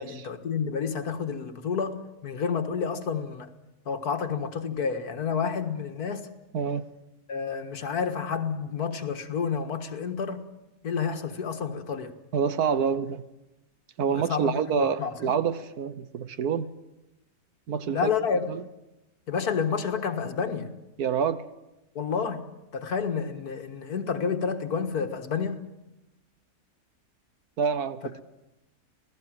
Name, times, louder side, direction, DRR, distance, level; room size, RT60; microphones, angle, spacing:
voice 1, 0.0-3.5 3.9-6.3 7.3-10.4 10.8-12.1 14.1-15.3 17.8-18.5 19.3-20.7 22.0-22.4 22.7-25.6, left 6 dB, 80° left, 2.1 m, -30 dB
voice 2, 6.5-6.9 12.3-13.2 14.0-16.7 17.7-18.1 18.5-18.6 21.0-21.4 27.6-28.2, right 7 dB, 80° right, 1.5 m, -27 dB
26.0 x 18.0 x 7.6 m
omnidirectional pair, 1.6 m